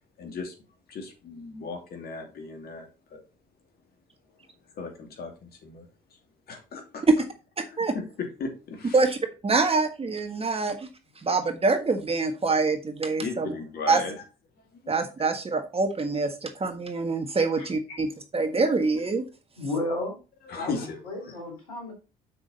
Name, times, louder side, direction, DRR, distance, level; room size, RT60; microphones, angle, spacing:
voice 1, 0.2-0.5 0.9-3.2 4.7-5.9 6.5-7.0 7.7-9.0 13.2-14.2 14.7-14.9 20.5-21.0 21.2-21.3, left 4 dB, 60° left, 4 dB, 2.6 m, -36 dB
voice 2, 7.6-7.9 8.9-9.2 9.4-10.9 11.2-13.5 13.9-14.0 14.9-18.1 18.3-19.2, right 3 dB, 35° right, 6 dB, 1.6 m, -25 dB
voice 3, 19.6-20.2 20.5-21.9, left 2 dB, 90° left, 2 dB, 3.5 m, -33 dB
7.4 x 6.1 x 4.2 m, 0.32 s
hypercardioid pair, 50°, 18 cm